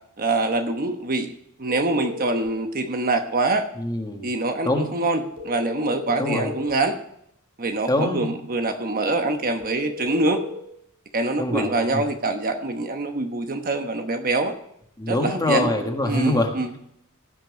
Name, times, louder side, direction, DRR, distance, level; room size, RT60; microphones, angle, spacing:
voice 1, 0.2-1.3 1.6-3.7 4.2-7.0 7.6-10.4 11.1-14.5 15.1-15.7 16.0-16.8, right 2 dB, 40° right, 6 dB, 1.1 m, -25 dB
sound 1, 1.7-2.5 5.4-6.8 9.6-10.6, left 3 dB, 60° right, 3.0 m, -35 dB
voice 2, 3.8-4.3 4.6-4.9 6.2-6.5 7.9-8.3 11.4-12.0 15.0-16.5, left 1 dB, 20° left, 3 dB, 1.7 m, -24 dB
16.0 x 5.9 x 6.3 m, 0.73 s
head